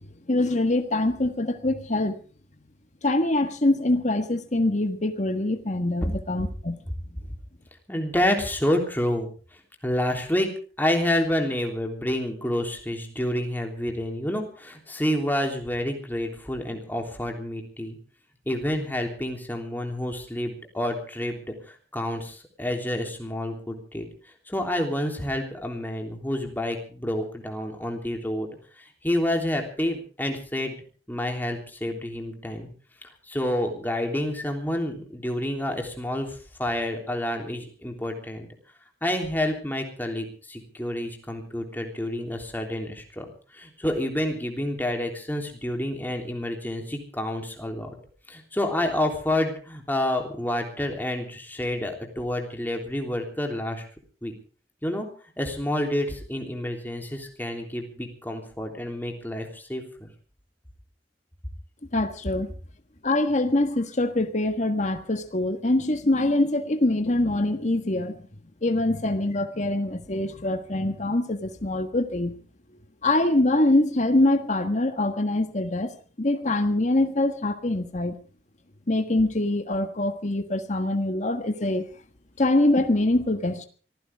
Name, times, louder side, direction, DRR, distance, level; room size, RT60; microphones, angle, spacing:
voice 1, 0.3-2.1 3.0-6.8 61.9-62.5 63.0-68.2 68.6-72.3 73.0-75.9 76.2-78.2 78.9-81.8 82.4-83.7, left 2 dB, 45° left, 8 dB, 1.5 m, -24 dB
voice 2, 7.9-10.5 10.8-18.0 18.4-24.1 24.5-28.5 28.8-30.7 31.1-32.7 33.3-38.5 39.0-43.3 43.5-47.9 48.3-53.8 54.2-54.3 54.8-55.1 55.4-60.1, left 1 dB, 10° left, 3 dB, 3.4 m, -29 dB
24.5 x 15.5 x 3.6 m, 0.40 s
head